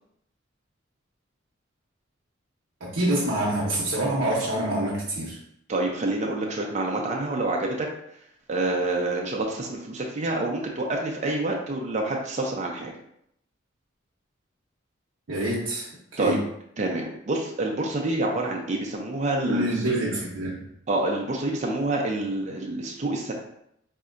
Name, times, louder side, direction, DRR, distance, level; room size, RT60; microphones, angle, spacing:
voice 1, 2.8-5.4 15.3-15.9 16.1-16.4 19.5-20.6, right 1 dB, 70° right, -5 dB, 0.7 m, -26 dB
voice 2, 5.7-7.9 8.5-12.9 16.2-16.4 16.8-19.7 20.9-23.3, right 2 dB, 35° right, 0 dB, 0.5 m, -27 dB
4.1 x 2.7 x 2.4 m, 0.74 s
head